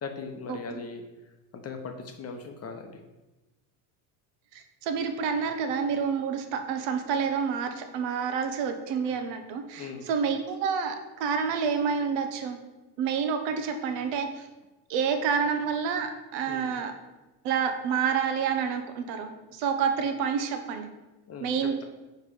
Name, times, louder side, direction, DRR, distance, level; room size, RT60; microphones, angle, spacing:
voice 1, 0.0-1.0 1.5-2.9 9.7-10.1 16.5-16.7 21.3-21.8, left 4 dB, 30° left, 5 dB, 0.8 m, -39 dB
voice 2, 4.5-12.6 13.0-14.5 14.9-16.9 17.4-20.9 21.4-21.8, right 6 dB, 65° right, 6 dB, 1.0 m, -28 dB
4.7 x 4.7 x 4.9 m, 1.1 s
supercardioid pair, 90°, 47 cm